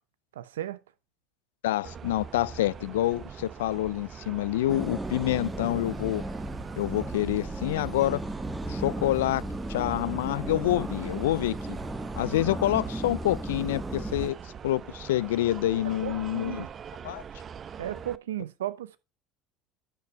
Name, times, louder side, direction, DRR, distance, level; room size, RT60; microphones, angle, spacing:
voice 1, 0.3-0.8 14.2-14.3 15.8-16.7 17.8-19.0, right 12 dB, 85° right, 0.7 m, -35 dB
voice 2, 1.6-6.2 6.8-8.2 8.7-9.4 9.7-11.8 12.2-14.4 14.6-16.6 17.0-17.2, left 14 dB, 80° left, 0.4 m, -27 dB
sound 1, 1.8-18.2, right 7 dB, 40° right, 0.6 m, -43 dB
sound 2, 4.7-14.3, right 1 dB, 10° right, 1.4 m, -35 dB
10.5 x 5.9 x 4.4 m
hypercardioid pair, 75°, 0 cm